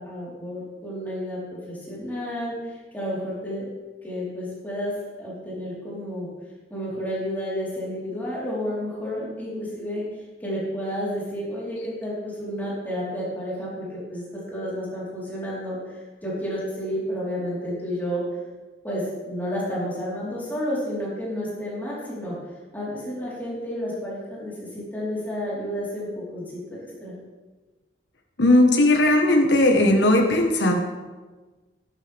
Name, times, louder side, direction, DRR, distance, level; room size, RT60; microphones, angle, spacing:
voice 1, 0.0-2.5 2.9-3.6 4.0-6.3 6.7-10.0 10.4-15.8 16.2-18.2 18.8-22.4 22.7-26.4 26.7-27.1, equal, 10° left, -8 dB, 4.3 m, -31 dB
voice 2, 28.4-30.7, left 1 dB, 75° left, 2 dB, 1.6 m, -17 dB
13.0 x 11.5 x 3.6 m, 1.3 s
head